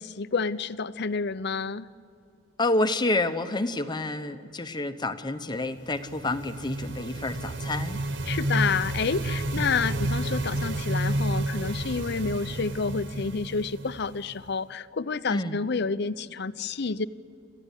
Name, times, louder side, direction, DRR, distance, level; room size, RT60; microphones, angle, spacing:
voice 1, 0.2-1.9 8.3-17.1, left 5 dB, 55° left, 14 dB, 0.6 m, -29 dB
voice 2, 2.6-8.0 9.5-9.7 15.3-15.6, left 2 dB, 20° left, 9 dB, 0.9 m, -29 dB
sound 1, 5.7-14.5, right 1 dB, 60° right, 1.0 m, -31 dB
29.0 x 14.5 x 10.0 m, 2.4 s
head